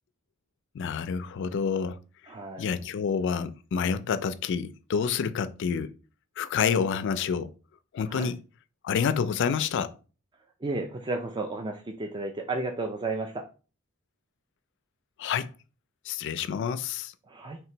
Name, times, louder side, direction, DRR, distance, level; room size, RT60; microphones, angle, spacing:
voice 1, 0.7-2.0 2.6-5.9 6.4-7.5 7.9-8.4 8.8-10.0 15.2-15.5 16.1-17.1, left 6 dB, 60° left, 0.3 m, -28 dB
voice 2, 2.3-2.7 8.1-8.3 10.6-13.4 17.3-17.6, right 3 dB, 20° right, 0.4 m, -33 dB
3.2 x 2.9 x 4.3 m
head